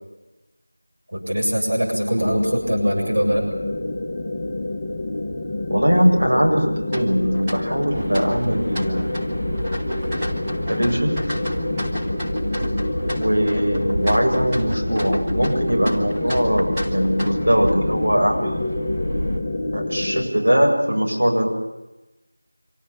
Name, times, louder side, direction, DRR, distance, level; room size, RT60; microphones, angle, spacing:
voice 1, 1.1-3.5, equal, 55° right, 0 dB, 7.6 m, -22 dB
sound 1, 2.2-20.3, left 2 dB, 15° left, 1.5 m, -27 dB
voice 2, 5.7-9.2 10.7-11.4 13.0-18.7 19.7-21.5, equal, 75° right, 1 dB, 7.6 m, -21 dB
sound 2, 6.9-17.7, equal, 10° right, 1.6 m, -34 dB
sound 3, 7.9-19.4, equal, 40° right, 6.0 m, -30 dB
25.5 x 18.5 x 8.9 m, 1.0 s
figure-of-eight pair, 175°, 0 cm